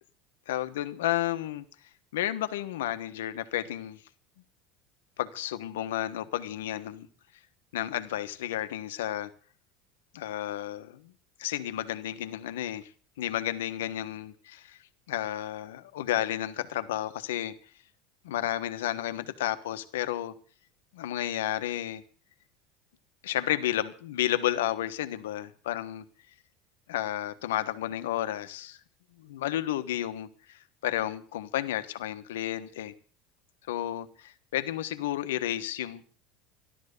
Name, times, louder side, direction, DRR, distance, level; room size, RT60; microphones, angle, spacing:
voice 1, 0.5-1.6 2.1-4.0 5.2-7.1 7.7-9.3 10.1-11.1 11.4-12.9 13.2-14.8 15.1-17.5 18.2-20.3 20.9-22.0 23.2-26.0 26.9-28.8 29.2-32.9 33.7-36.0, left 13 dB, 85° left, 1.2 m, -32 dB
13.0 x 12.0 x 6.7 m
supercardioid pair, 95°, 0 cm